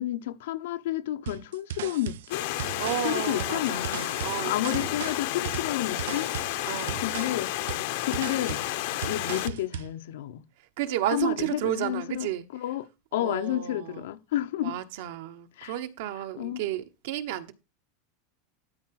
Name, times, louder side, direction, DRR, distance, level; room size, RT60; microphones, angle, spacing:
voice 1, 0.0-2.5 3.0-6.3 7.0-7.5 8.0-8.6 9.1-10.4 11.1-14.7 15.6-15.7 16.4-16.6, left 13 dB, 75° left, 1.0 m, -31 dB
sound 1, 1.3-9.9, right 12 dB, 85° right, 0.5 m, -37 dB
Stream, 2.3-9.5, left 15 dB, 55° left, 0.9 m, -31 dB
voice 2, 2.7-3.9 4.2-4.9 6.6-7.0 10.8-12.5 13.2-14.1 14.6-17.5, right 12 dB, 55° right, 1.1 m, -32 dB
12.5 x 4.7 x 5.9 m
supercardioid pair, 175°, 0 cm